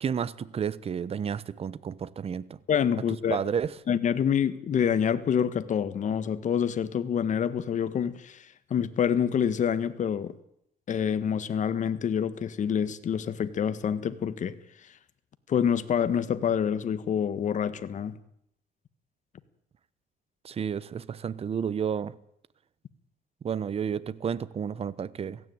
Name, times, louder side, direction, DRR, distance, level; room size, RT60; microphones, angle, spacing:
voice 1, 0.0-2.5 3.3-3.7 20.4-22.1 23.4-25.4, right 7 dB, 35° right, 1.0 m, -31 dB
voice 2, 2.7-3.4 3.9-10.3 10.9-14.5 15.5-18.1, left 8 dB, 45° left, 1.6 m, -27 dB
17.0 x 16.0 x 9.5 m
cardioid pair, 110°, 17 cm